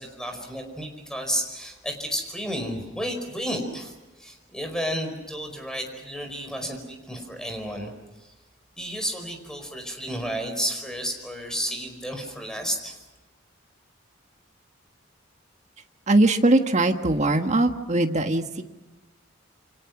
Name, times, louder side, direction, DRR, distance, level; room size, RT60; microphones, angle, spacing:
voice 1, 0.0-3.9 4.2-7.9 8.8-13.0, equal, 5° left, 4 dB, 4.9 m, -32 dB
voice 2, 16.1-18.6, right 2 dB, 35° right, 6 dB, 1.6 m, -21 dB
29.0 x 25.0 x 6.1 m, 1.1 s
head